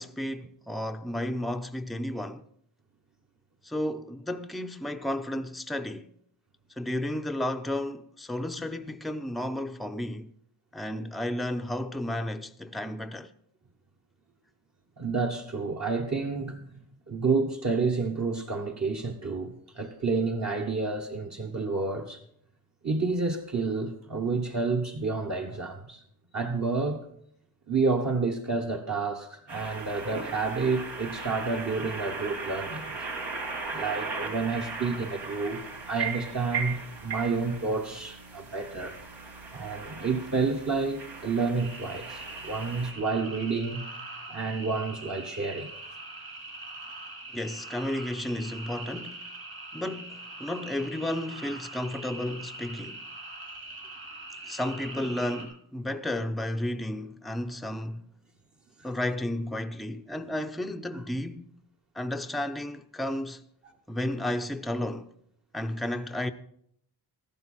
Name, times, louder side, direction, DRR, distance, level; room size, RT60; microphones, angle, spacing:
voice 1, 0.0-2.4 3.6-6.1 6.8-10.3 10.7-13.3 47.3-49.2 49.7-53.0 54.5-58.1 58.8-61.5 62.0-63.4 63.9-65.1 65.5-66.3, left 1 dB, ahead, 0.5 m, -32 dB
voice 2, 15.0-22.2 22.8-26.0 26.3-27.0 27.7-32.9 33.7-35.6 35.9-39.0 39.5-43.8 44.3-45.7, right 4 dB, 40° right, 1.1 m, -29 dB
sound 1, 29.5-42.9, right 4 dB, 85° right, 2.5 m, -38 dB
sound 2, 41.6-55.5, right 2 dB, 70° right, 6.1 m, -42 dB
14.0 x 12.0 x 4.3 m
wide cardioid pair, 95°, 40 cm